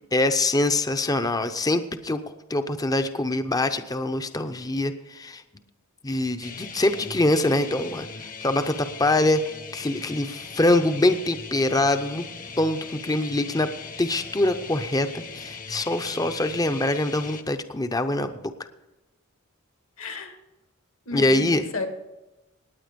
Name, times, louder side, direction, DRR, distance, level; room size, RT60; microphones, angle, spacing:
voice 1, 0.1-2.2 2.5-5.4 6.0-8.1 8.4-9.4 9.7-12.2 12.6-13.7 14.0-18.5 21.1-21.7, left 2 dB, 20° left, 9 dB, 0.7 m, -24 dB
sound 1, 6.4-17.4, left 5 dB, 40° left, 1.1 m, -39 dB
voice 2, 20.0-20.4 21.1-21.9, left 3 dB, 70° left, 5 dB, 2.2 m, -33 dB
18.5 x 9.3 x 5.2 m, 1.0 s
head